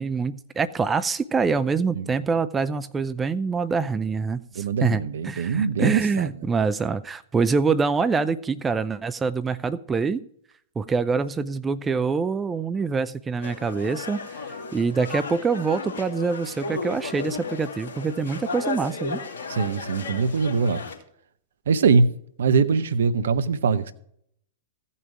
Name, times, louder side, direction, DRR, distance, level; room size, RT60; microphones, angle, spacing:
voice 1, 0.0-10.2 10.8-19.2, right 5 dB, 15° right, 0.5 m, -25 dB
voice 2, 4.6-6.3 19.5-20.8 21.7-22.1 22.4-23.9, right 5 dB, 65° right, 0.7 m, -22 dB
sound 1, 13.4-20.9, left 4 dB, 60° left, 2.6 m, -34 dB
15.5 x 5.6 x 4.9 m
figure-of-eight pair, 100°, 0 cm